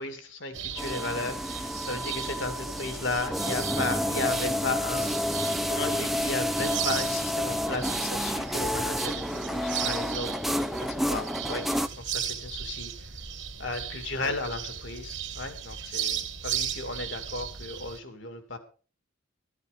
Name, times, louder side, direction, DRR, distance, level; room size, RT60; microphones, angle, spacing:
voice 1, 0.0-5.1 5.7-10.4 10.8-12.9 13.6-18.6, left 2 dB, 70° left, 8 dB, 2.6 m, -34 dB
sound 1, 0.5-18.0, right 8 dB, 70° right, 2.4 m, -37 dB
sound 2, 0.8-11.9, equal, ahead, 0.7 m, -30 dB
13.5 x 12.5 x 5.2 m, 0.39 s
head